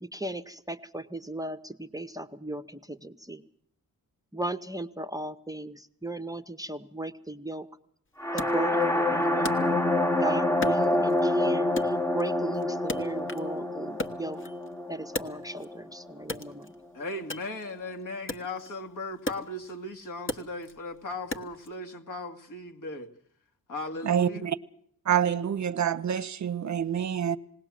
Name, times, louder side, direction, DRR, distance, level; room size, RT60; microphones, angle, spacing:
voice 1, 0.0-3.4 4.3-7.7 8.3-9.8 10.2-14.4 14.9-16.7, right 2 dB, 10° right, 0.8 m, -36 dB
sound 1, 8.2-16.1, left 1 dB, 10° left, 1.1 m, -27 dB
Wood, 8.4-10.2 10.6-11.4 11.8-13.6 13.9-15.8 16.2-21.7, left 2 dB, 35° left, 1.3 m, -38 dB
voice 2, 16.9-23.1 23.7-24.5, left 2 dB, 60° left, 2.1 m, -37 dB
voice 3, 24.0-24.6 25.0-27.4, right 9 dB, 50° right, 0.8 m, -27 dB
19.5 x 18.0 x 7.5 m
cardioid pair, 80°, 36 cm